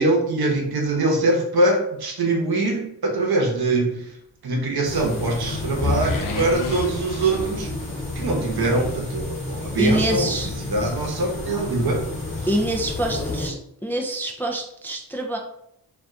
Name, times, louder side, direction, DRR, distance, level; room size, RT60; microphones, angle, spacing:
voice 1, 0.0-4.1 4.4-7.7 8.1-10.3 10.7-12.1, right 2 dB, 65° right, 1 dB, 0.9 m, -23 dB
sound 1, 4.7-8.1 8.4-8.5, left 4 dB, 55° left, 0.6 m, -35 dB
sound 2, 4.8-13.5, left 2 dB, 30° left, 1.2 m, -30 dB
voice 2, 9.8-10.5 12.5-13.6 13.8-15.4, right 1 dB, 5° left, 1 dB, 0.4 m, -25 dB
2.5 x 2.2 x 3.7 m, 0.74 s
cardioid pair, 60°, 40 cm